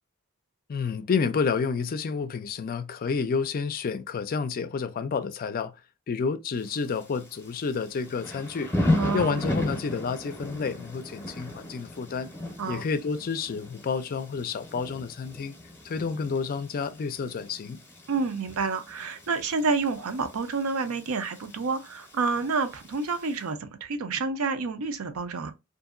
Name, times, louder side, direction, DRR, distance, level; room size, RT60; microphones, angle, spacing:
voice 1, 0.7-5.7 6.1-8.7 9.1-12.3 12.7-15.6 15.8-17.8, left 5 dB, 45° left, 0.4 m, -29 dB
Thunder / Rain, 6.6-23.4, left 1 dB, 10° left, 0.7 m, -36 dB
voice 2, 9.0-9.4 12.6-12.8 18.1-25.5, right 4 dB, 80° right, 0.5 m, -29 dB
2.7 x 2.6 x 2.5 m
head